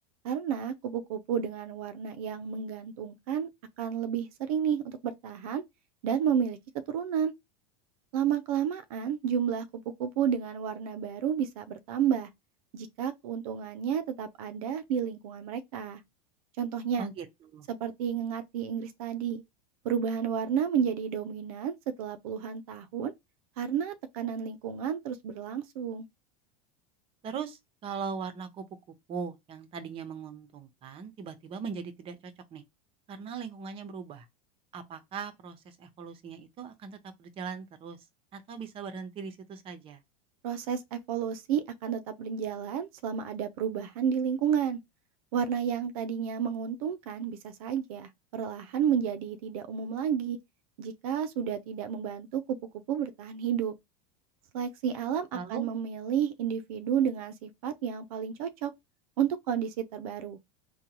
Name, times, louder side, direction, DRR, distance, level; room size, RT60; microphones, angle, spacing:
voice 1, 0.2-3.5 3.8-5.6 6.0-6.6 6.9-7.3 8.1-12.3 12.7-16.0 16.6-17.1 17.7-19.4 19.8-23.1 23.6-26.1 40.4-44.8 45.3-50.4 50.8-52.6 52.9-53.7 54.5-58.7 59.2-60.4, right 8 dB, 70° right, 0.6 m, -31 dB
voice 2, 17.0-17.7 27.2-28.6 29.1-32.6 33.1-34.3 34.7-38.0 38.3-40.0 55.3-55.6, right 6 dB, 30° right, 0.8 m, -40 dB
3.6 x 2.3 x 2.9 m
supercardioid pair, 140°, 19 cm